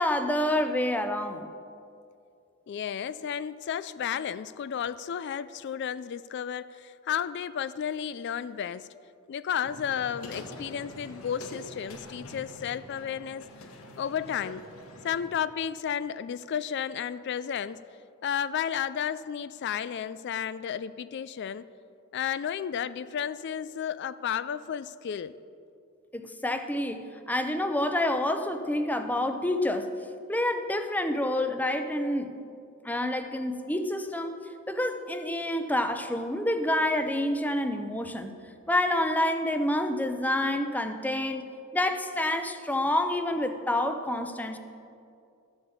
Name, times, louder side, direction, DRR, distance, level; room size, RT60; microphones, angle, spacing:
voice 1, 0.0-1.5 26.1-29.9 30.3-32.4 32.8-34.4 34.7-38.3 38.7-41.4 41.7-44.6, left 1 dB, 10° left, 7 dB, 0.6 m, -28 dB
voice 2, 2.7-8.9 9.3-13.4 14.0-14.7 15.0-17.8 18.2-21.6 22.1-25.3, left 8 dB, 55° left, 15 dB, 0.3 m, -32 dB
sound 1, 9.6-15.4, left 1 dB, 80° left, 1.4 m, -45 dB
13.5 x 7.8 x 7.0 m, 2.5 s
head